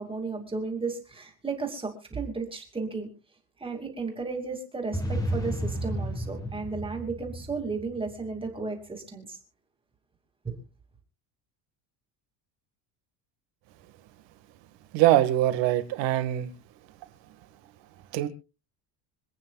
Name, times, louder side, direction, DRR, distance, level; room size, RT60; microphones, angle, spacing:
voice 1, 0.0-3.1 3.6-9.4 10.4-10.5, right 4 dB, 10° right, 2.7 m, -34 dB
sound 1, 4.9-8.4, right 1 dB, 5° left, 1.6 m, -32 dB
voice 2, 14.9-16.5 18.1-18.3, right 14 dB, 60° right, 2.1 m, -23 dB
26.5 x 9.0 x 2.5 m
cardioid pair, 170°, 48 cm